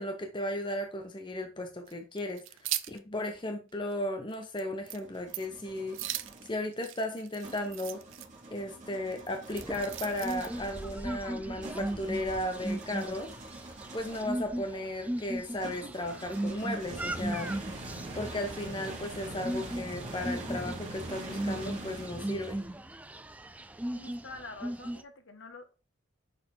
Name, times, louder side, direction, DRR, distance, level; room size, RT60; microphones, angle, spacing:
voice 1, 0.0-6.0 6.4-8.0 8.5-13.3 13.9-17.5 18.1-22.6, left 1 dB, 20° left, 0.7 m, -35 dB
sound 1, 1.9-3.0 3.4-3.5 3.9-4.0 4.3-4.6 4.9-5.0 5.3-5.6 5.9-8.3 9.1-10.7, right 14 dB, 65° right, 0.5 m, -39 dB
sound 2, 4.7-6.5 7.4-14.4 15.6-22.9, right 2 dB, 35° right, 2.1 m, -44 dB
sound 3, 9.5-25.0, right 1 dB, 5° right, 0.3 m, -38 dB
voice 2, 23.9-25.7, left 3 dB, 60° left, 1.3 m, -46 dB
6.5 x 4.2 x 4.3 m
head